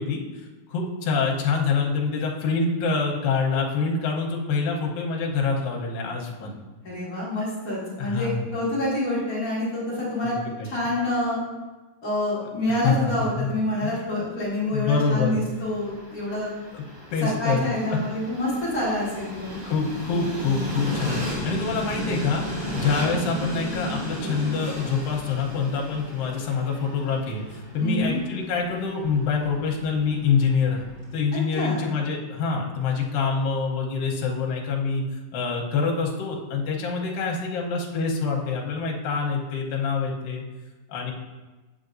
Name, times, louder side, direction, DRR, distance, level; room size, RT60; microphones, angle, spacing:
voice 1, 0.0-6.6 8.0-8.5 10.2-10.7 12.8-13.5 13.8-13.9 14.7-15.4 16.7-16.8 17.1-18.0 18.2-18.4 19.6-30.9 31.1-35.0 35.3-40.4 40.9-41.1, left 5 dB, 75° left, -1 dB, 2.5 m, -26 dB
voice 2, 6.8-10.3 10.6-11.4 12.0-16.5 17.2-19.6 27.8-28.2 31.5-31.9, left 1 dB, 35° left, -9 dB, 1.6 m, -27 dB
Train, 15.1-31.2, left 1 dB, 20° right, 1.0 m, -35 dB
8.1 x 7.1 x 2.6 m, 1.2 s
omnidirectional pair, 4.4 m